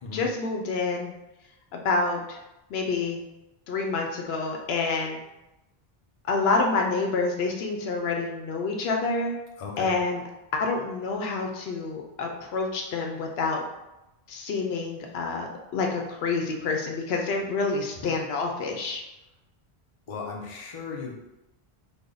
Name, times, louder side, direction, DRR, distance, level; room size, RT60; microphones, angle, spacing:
voice 1, 0.1-1.1 1.7-2.4 2.7-3.2 3.7-5.2 6.3-9.4 9.8-10.2 10.5-13.6 14.3-19.0, left 3 dB, 80° left, 2 dB, 0.8 m, -28 dB
voice 2, 9.6-9.9 17.9-18.1 20.1-21.2, left 5 dB, 40° left, -1 dB, 0.6 m, -36 dB
3.3 x 2.2 x 3.8 m, 0.95 s
omnidirectional pair, 1.0 m